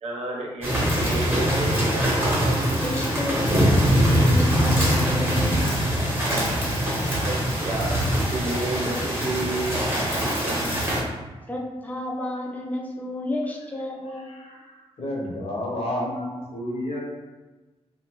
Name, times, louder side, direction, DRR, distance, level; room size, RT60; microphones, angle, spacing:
voice 1, 0.0-2.9 4.8-4.9 7.2-9.8 10.4-10.9, right 2 dB, 70° right, -3 dB, 0.7 m, -31 dB
sound 1, 0.6-11.0, equal, 20° right, 0.7 m, -23 dB
voice 2, 2.8-5.6 10.0-10.7 11.5-14.3, left 1 dB, 15° left, -1 dB, 0.4 m, -32 dB
voice 3, 14.2-17.0, left 1 dB, 65° left, -2 dB, 0.7 m, -31 dB
2.6 x 2.2 x 2.9 m, 1.2 s
wide cardioid pair, 135°, 11 cm